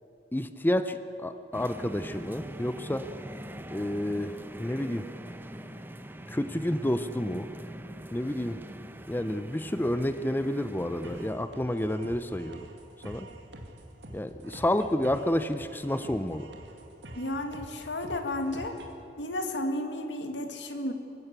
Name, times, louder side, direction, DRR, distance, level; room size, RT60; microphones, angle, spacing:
voice 1, 0.3-3.1 3.7-5.1 6.3-7.5 8.1-8.6 9.1-12.7 13.0-13.3 14.1-16.5, left 1 dB, 10° left, 11 dB, 0.6 m, -30 dB
sound 1, 1.5-11.3, equal, 10° right, 0.9 m, -43 dB
sound 2, 11.0-19.0, right 1 dB, 70° right, 2.4 m, -46 dB
voice 2, 17.2-18.8 19.2-20.9, left 1 dB, 80° left, 6 dB, 2.2 m, -32 dB
24.5 x 15.5 x 8.3 m, 3.0 s
head